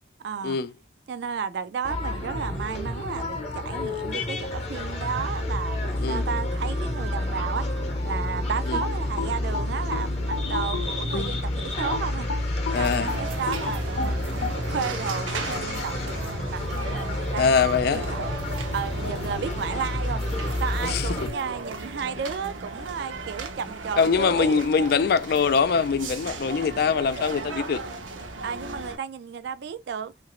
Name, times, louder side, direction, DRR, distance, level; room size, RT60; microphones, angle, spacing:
voice 1, 0.2-0.6 1.1-7.7 8.0-12.3 12.8-18.3 18.7-20.2 20.6-24.6 28.4-30.1, right 6 dB, 60° right, 0.3 m, -33 dB
sound 1, 1.8-21.3, left 1 dB, 35° left, 0.8 m, -29 dB
sound 2, 8.8-11.4 11.9-14.6, left 4 dB, 85° left, 0.7 m, -33 dB
voice 2, 12.7-13.1 17.4-18.1 20.8-21.3 24.0-27.8, left 5 dB, 50° left, 0.3 m, -23 dB
sound 3, 12.7-29.0, right 3 dB, 85° right, 0.7 m, -36 dB
2.8 x 2.5 x 2.9 m
head